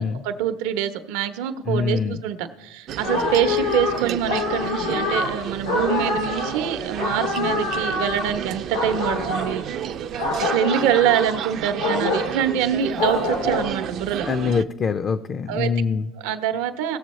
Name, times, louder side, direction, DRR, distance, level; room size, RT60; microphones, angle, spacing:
voice 1, 0.0-9.6 10.4-14.3 15.5-15.7 16.2-17.0, right 9 dB, 70° right, 10 dB, 0.8 m, -25 dB
voice 2, 1.7-2.2 14.2-16.1, left 5 dB, 30° left, 11 dB, 0.4 m, -24 dB
sound 1, 2.9-14.6, right 10 dB, 45° right, 0.4 m, -31 dB
sound 2, 3.0-13.9, left 3 dB, 90° left, 3.3 m, -26 dB
18.0 x 6.9 x 3.1 m, 1.1 s
supercardioid pair, 130°, 0 cm